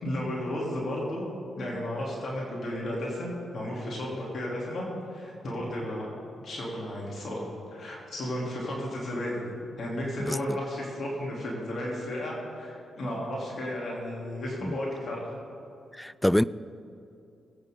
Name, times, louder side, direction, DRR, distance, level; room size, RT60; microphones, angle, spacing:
voice 1, 0.0-1.2 1.6-6.1 6.4-7.4 7.7-9.4 9.8-15.4, left 1 dB, 60° left, -4 dB, 3.5 m, -33 dB
voice 2, 10.2-10.6 14.6-14.8 15.9-16.4, left 1 dB, 10° left, 19 dB, 0.4 m, -26 dB
21.0 x 8.9 x 4.0 m, 2.6 s
supercardioid pair, 50°, 0 cm